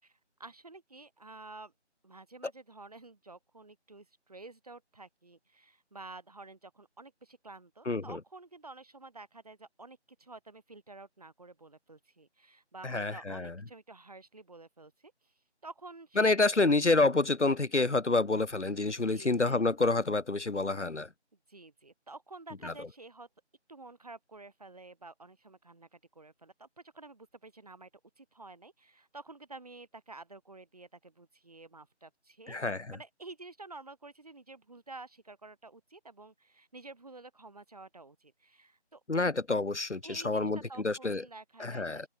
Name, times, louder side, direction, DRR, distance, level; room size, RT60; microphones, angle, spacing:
voice 1, 0.0-1.7 2.0-15.3 15.6-16.3 19.0-19.6 21.5-23.3 23.7-27.9 28.2-32.6 32.9-39.0 40.0-42.1, right 3 dB, 35° right, 3.6 m, -50 dB
voice 2, 7.9-8.2 12.8-13.5 16.2-21.1 22.6-22.7 32.5-32.9 39.1-40.6 40.8-41.2 41.6-42.1, left 3 dB, 75° left, 1.6 m, -28 dB
open air
figure-of-eight pair, 170°, 35 cm